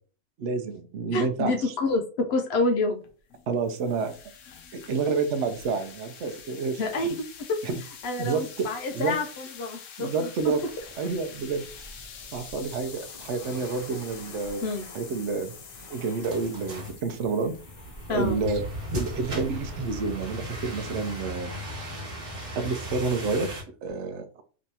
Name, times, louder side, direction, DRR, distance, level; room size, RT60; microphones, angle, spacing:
voice 1, 0.4-1.7 3.5-4.1 4.7-7.1 7.6-7.8 8.2-8.7 8.9-9.2 10.0-10.6 11.0-11.6 12.3-14.7 14.9-15.5 15.9-17.5 18.1-18.6 18.9-21.9 22.6-24.4, right 4 dB, 70° right, 7 dB, 0.9 m, -29 dB
voice 2, 1.1-3.0 6.8-7.1 7.5-7.6 8.0-10.5 14.6-14.9 18.1-18.4, left 2 dB, 60° left, 5 dB, 0.8 m, -28 dB
sound 1, 3.0-21.2, left 7 dB, 80° left, 1.0 m, -47 dB
Waves surf, 10.4-19.8, equal, 30° left, 1.4 m, -48 dB
sound 2, 16.2-23.6, equal, 35° right, 1.3 m, -36 dB
3.5 x 3.0 x 2.8 m, 0.40 s
omnidirectional pair, 1.3 m